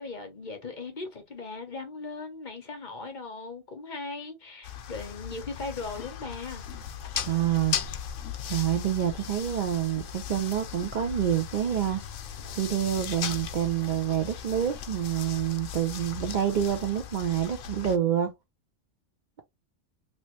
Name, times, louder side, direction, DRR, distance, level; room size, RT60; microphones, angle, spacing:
voice 1, 0.0-6.6, left 3 dB, 45° left, 0.9 m, -38 dB
sound 1, 4.6-18.0, left 9 dB, 85° left, 1.0 m, -37 dB
voice 2, 7.2-7.8 8.4-12.0 12.6-18.3, right 10 dB, 55° right, 0.5 m, -27 dB
3.0 x 3.0 x 2.9 m
omnidirectional pair, 1.3 m